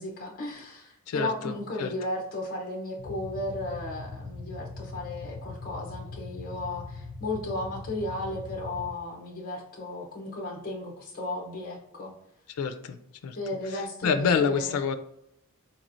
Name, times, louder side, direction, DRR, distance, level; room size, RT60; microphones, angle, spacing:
voice 1, 0.0-12.1 13.4-14.8, left 1 dB, 40° left, -1 dB, 0.8 m, -35 dB
voice 2, 1.1-1.9 12.5-13.4 14.0-14.9, left 6 dB, 90° left, 9 dB, 0.4 m, -27 dB
sound 1, 3.0-8.9, left 3 dB, 70° left, 0.8 m, -41 dB
4.1 x 3.1 x 2.6 m, 0.80 s
head